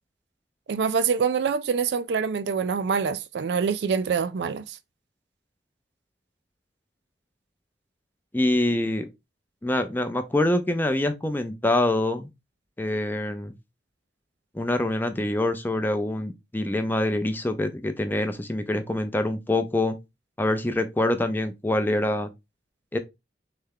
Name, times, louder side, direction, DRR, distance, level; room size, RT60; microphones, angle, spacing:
voice 1, 0.7-4.8, right 6 dB, 70° right, 0.4 m, -25 dB
voice 2, 8.3-9.1 9.6-12.3 12.8-13.5 14.5-20.0 20.4-22.3 22.9-23.0, left 1 dB, 10° left, 0.5 m, -25 dB
3.3 x 3.3 x 3.6 m
head